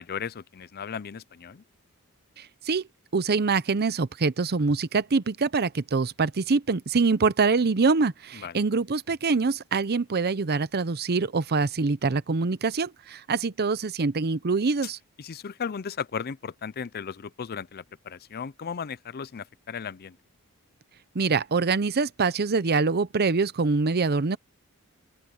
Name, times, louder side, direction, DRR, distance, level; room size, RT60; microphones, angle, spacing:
voice 1, 0.0-1.6 8.3-8.6 15.2-20.2, left 6 dB, 45° left, 0.5 m, -36 dB
voice 2, 2.4-2.8 3.1-15.0 21.1-24.4, right 4 dB, 45° right, 0.7 m, -24 dB
open air
head